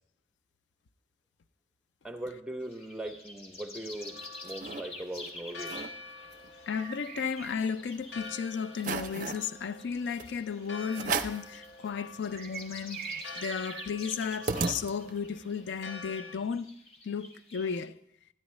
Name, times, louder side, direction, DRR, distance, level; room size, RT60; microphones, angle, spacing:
voice 1, 2.0-4.2 4.4-5.7, right 1 dB, 5° right, 0.7 m, -39 dB
sound 1, 2.6-17.7, left 2 dB, 35° left, 1.1 m, -49 dB
Church bell, 4.0-16.4, left 3 dB, 70° left, 1.1 m, -48 dB
sound 2, 4.0-4.8 5.3-5.4 5.6-5.9 6.3-7.9 8.3-8.4 8.8-9.5 10.2-10.3 10.9-11.5 12.0-12.1 12.3-15.3, right 4 dB, 45° right, 0.5 m, -36 dB
voice 2, 6.7-16.7 17.0-17.9, left 6 dB, 90° left, 0.4 m, -34 dB
12.5 x 9.5 x 3.2 m
head